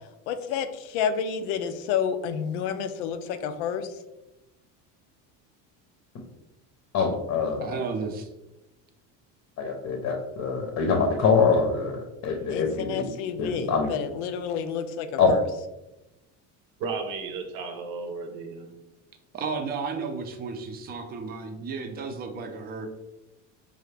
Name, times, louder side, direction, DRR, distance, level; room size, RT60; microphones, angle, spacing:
voice 1, 0.3-4.0 12.5-15.4, left 7 dB, 90° left, 10 dB, 0.5 m, -30 dB
voice 2, 6.9-7.8 9.6-13.1 13.4-13.9 15.2-15.3, left 5 dB, 45° left, 3 dB, 0.7 m, -24 dB
voice 3, 7.6-8.3 19.3-22.9, right 4 dB, 25° right, 4 dB, 0.5 m, -33 dB
voice 4, 16.8-18.8, right 4 dB, 65° right, 5 dB, 0.8 m, -34 dB
4.8 x 2.5 x 3.2 m, 0.98 s
cardioid pair, 125°, 35 cm